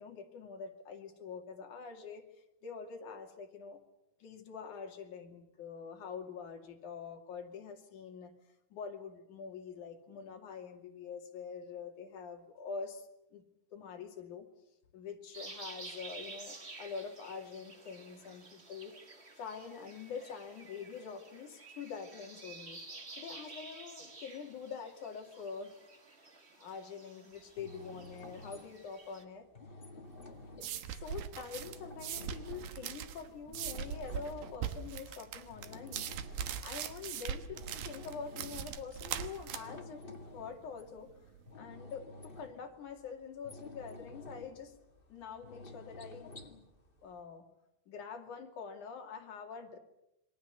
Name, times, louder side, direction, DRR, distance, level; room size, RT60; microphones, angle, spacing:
voice 1, 0.0-3.8 4.2-8.3 8.7-13.4 13.7-14.5 14.9-19.0 19.4-22.8 23.2-25.7 26.6-29.5 30.6-36.2 36.6-41.1 41.5-44.8 45.1-46.3 47.0-47.4 47.9-49.8, left 6 dB, 60° left, 3 dB, 3.8 m, -45 dB
sound 1, 15.3-29.2, right 3 dB, 25° right, 1.6 m, -51 dB
sound 2, 27.3-47.2, left 2 dB, 20° left, 1.7 m, -52 dB
sound 3, 30.1-41.4, right 9 dB, 75° right, 2.9 m, -41 dB
28.0 x 22.5 x 6.9 m, 0.87 s
omnidirectional pair, 4.1 m